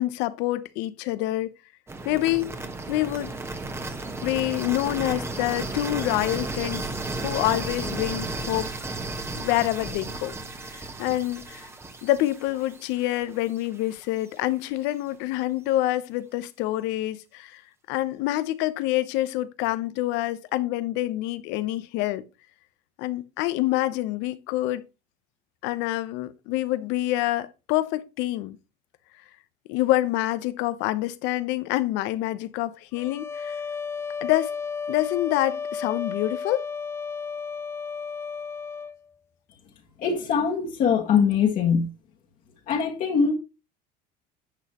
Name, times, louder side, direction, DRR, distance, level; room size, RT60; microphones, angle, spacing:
voice 1, 0.0-1.5 2.0-2.6 2.9-3.3 4.2-6.9 7.2-8.7 9.4-10.4 10.6-11.7 12.0-17.6 17.9-22.2 23.0-24.8 25.6-28.6 29.7-33.6 34.2-34.6 34.9-36.6, left 16 dB, 75° left, 0.9 m, -26 dB
sound 1, 1.9-13.8, right 3 dB, 15° right, 1.1 m, -34 dB
sound 2, 32.9-39.0, left 5 dB, 15° left, 0.4 m, -33 dB
voice 2, 40.0-41.9 42.7-43.3, left 6 dB, 45° left, 1.7 m, -22 dB
10.5 x 7.1 x 3.0 m
cardioid pair, 140°, 18 cm